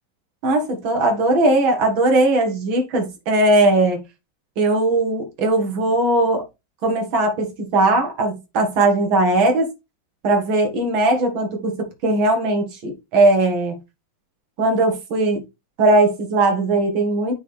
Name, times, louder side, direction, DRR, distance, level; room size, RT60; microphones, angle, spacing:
voice 1, 0.4-4.0 4.6-6.4 6.8-9.7 10.2-13.7 14.6-15.4 15.8-17.3, right 2 dB, 80° right, 2.3 m, -19 dB
8.5 x 4.1 x 3.3 m
omnidirectional pair, 2.1 m